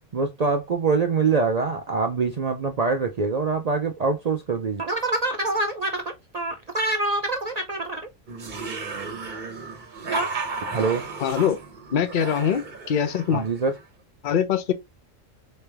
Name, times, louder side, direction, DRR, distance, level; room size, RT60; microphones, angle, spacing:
voice 1, 0.1-8.0 10.1-10.3 10.7-11.0 13.3-13.7, right 4 dB, 70° right, 0.3 m, -25 dB
sound 1, 8.3-13.8, right 4 dB, 40° right, 0.9 m, -34 dB
voice 2, 11.2-11.6 11.9-13.4 14.2-14.7, left 8 dB, 50° left, 0.7 m, -23 dB
4.1 x 3.3 x 3.3 m
omnidirectional pair, 1.4 m